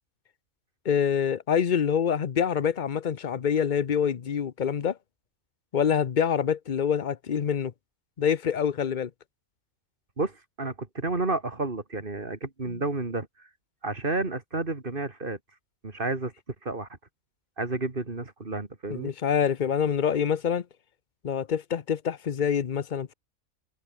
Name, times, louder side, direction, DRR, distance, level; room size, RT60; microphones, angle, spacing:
voice 1, 0.8-5.0 5.7-7.7 8.2-9.1 12.7-12.8 18.9-20.6 21.2-23.1, left 8 dB, 40° left, 0.7 m, -26 dB
voice 2, 10.2-13.5 13.8-15.4 15.8-16.3 16.6-16.9 17.6-19.1, right 3 dB, 35° right, 2.5 m, -31 dB
omnidirectional pair, 1.5 m